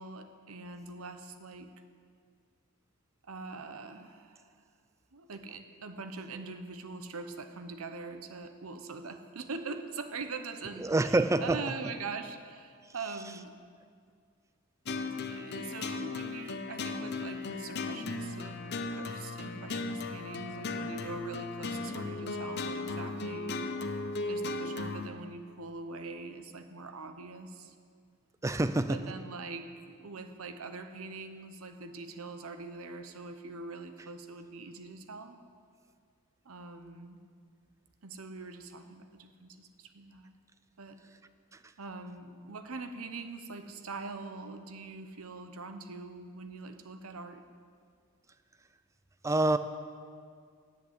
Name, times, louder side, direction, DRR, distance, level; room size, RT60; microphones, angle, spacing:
voice 1, 0.0-1.7 3.2-4.5 5.1-13.5 15.3-18.6 18.9-23.6 24.2-27.7 28.8-35.4 36.4-37.2 38.0-40.3 40.8-41.0 41.8-47.4, right 3 dB, 80° right, 8 dB, 0.9 m, -43 dB
voice 2, 10.8-11.6 28.4-29.0 49.2-49.6, right 2 dB, 15° right, 12 dB, 0.3 m, -26 dB
sound 1, 14.9-25.1, left 3 dB, 50° left, 0.7 m, -36 dB
10.5 x 8.2 x 8.1 m, 2.1 s
head